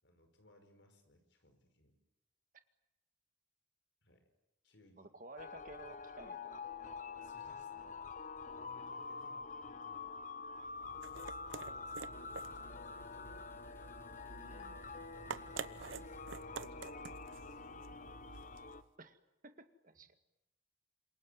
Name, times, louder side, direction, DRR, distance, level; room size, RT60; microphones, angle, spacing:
voice 1, 0.0-2.0 4.0-4.3 4.6-5.1 7.2-8.0 8.5-10.1 11.3-13.4 15.1-18.6 19.9-20.1, left 1 dB, 65° left, 7 dB, 5.5 m, -65 dB
voice 2, 5.0-6.6 14.3-15.0 19.0-19.2 19.4-20.1, right 2 dB, 45° right, 8 dB, 2.0 m, -54 dB
sound 1, 5.4-18.8, left 4 dB, 40° left, 1.0 m, -47 dB
sound 2, 10.7-18.9, right 5 dB, 85° right, 0.9 m, -49 dB
sound 3, 11.9-17.0, left 1 dB, 10° left, 1.9 m, -67 dB
27.5 x 22.5 x 9.7 m, 0.94 s
head